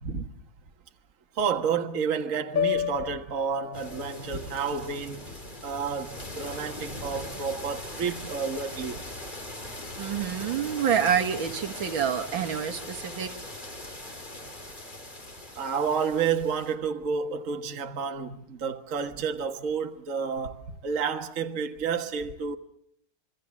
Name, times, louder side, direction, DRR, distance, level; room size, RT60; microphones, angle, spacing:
voice 1, 1.3-5.2 5.6-9.0 15.5-22.6, right 6 dB, 40° right, 1.6 m, -30 dB
sound 1, 2.6-6.8, left 9 dB, 45° left, 1.4 m, -34 dB
sound 2, 3.7-16.7, left 1 dB, 20° left, 2.8 m, -40 dB
voice 2, 10.0-13.3, right 8 dB, 65° right, 2.1 m, -27 dB
26.5 x 24.5 x 7.3 m
omnidirectional pair, 2.4 m